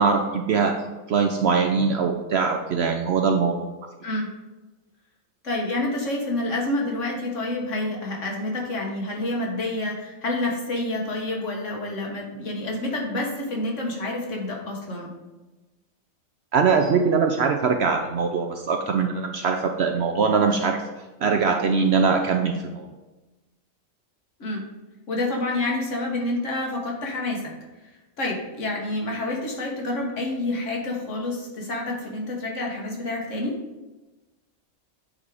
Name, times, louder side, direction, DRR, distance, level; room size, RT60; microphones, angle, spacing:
voice 1, 0.0-3.7 16.5-20.8 21.2-22.9, right 5 dB, 65° right, 5 dB, 0.7 m, -22 dB
voice 2, 5.4-15.1 24.4-24.6 25.1-27.5 28.2-33.6, left 2 dB, 60° left, -1 dB, 1.6 m, -28 dB
8.7 x 3.6 x 4.8 m, 1.1 s
omnidirectional pair, 1.4 m